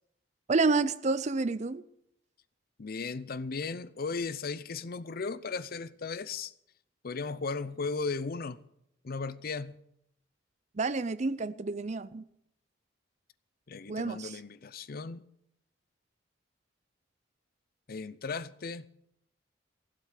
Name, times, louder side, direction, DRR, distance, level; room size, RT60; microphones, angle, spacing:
voice 1, 0.5-1.8 10.8-12.2 13.9-14.4, right 3 dB, 35° right, 0.5 m, -29 dB
voice 2, 2.8-6.5 7.0-8.6 9.0-9.8 13.7-15.2 17.9-18.9, left 4 dB, 50° left, 0.6 m, -36 dB
16.0 x 7.8 x 8.2 m
head